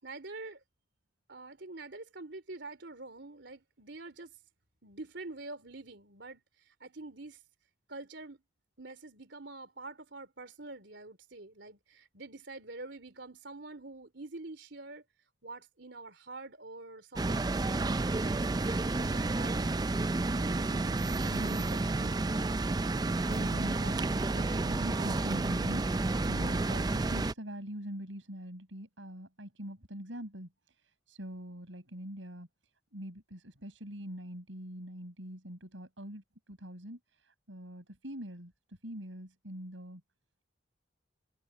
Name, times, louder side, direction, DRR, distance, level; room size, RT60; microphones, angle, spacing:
voice 1, 0.0-0.6 1.3-4.3 4.8-6.4 6.8-7.4 7.9-8.4 8.8-15.0 15.4-18.3 18.8-19.7 20.3-20.7, right 2 dB, 65° right, 3.9 m, -46 dB
sound 1, 17.2-27.3, right 2 dB, 20° right, 0.4 m, -30 dB
voice 2, 21.3-21.6 22.0-22.2 22.8-32.5 32.9-40.0, equal, 85° right, 5.9 m, -44 dB
head